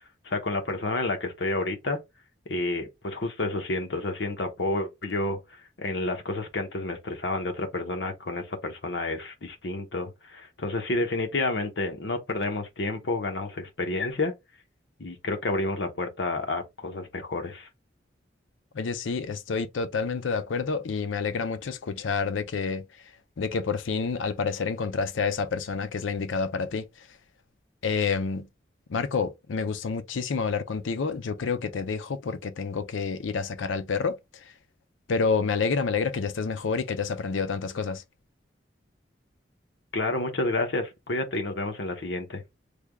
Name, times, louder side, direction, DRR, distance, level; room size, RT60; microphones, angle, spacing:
voice 1, 0.2-2.0 2.5-5.4 5.8-14.3 15.0-17.7 39.9-42.4, left 2 dB, 70° left, 0.9 m, -30 dB
voice 2, 18.7-22.9 23.4-26.9 27.8-28.5 28.9-34.2 35.1-38.0, left 5 dB, 90° left, 0.5 m, -28 dB
3.3 x 2.2 x 3.4 m
head